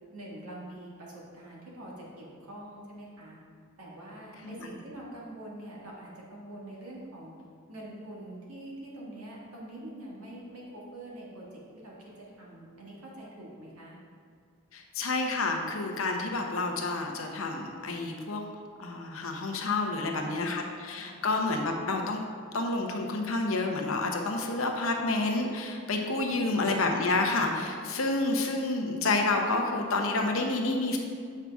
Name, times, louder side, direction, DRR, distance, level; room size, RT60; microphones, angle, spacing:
voice 1, 0.1-3.4 3.8-7.4 7.7-14.0 19.8-20.5 21.0-21.2 26.1-26.5, right 1 dB, 90° right, -4 dB, 1.6 m, -45 dB
voice 2, 14.7-18.4 18.8-22.2 22.5-31.0, left 2 dB, 65° left, 2 dB, 0.8 m, -29 dB
7.3 x 5.7 x 3.5 m, 2.1 s
head